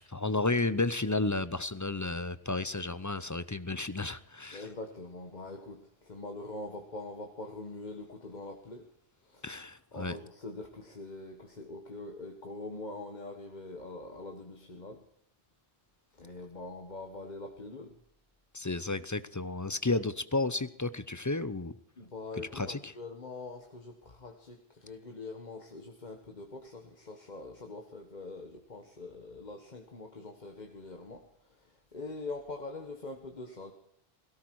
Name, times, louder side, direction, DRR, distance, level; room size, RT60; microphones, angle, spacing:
voice 1, 0.0-4.7 9.4-10.2 18.5-21.7 22.5-22.9, left 3 dB, 20° left, 0.5 m, -32 dB
voice 2, 4.5-8.9 9.2-9.6 9.9-15.0 16.2-18.0 22.0-33.7, left 2 dB, 45° left, 1.5 m, -43 dB
17.5 x 17.0 x 4.7 m
omnidirectional pair, 1.1 m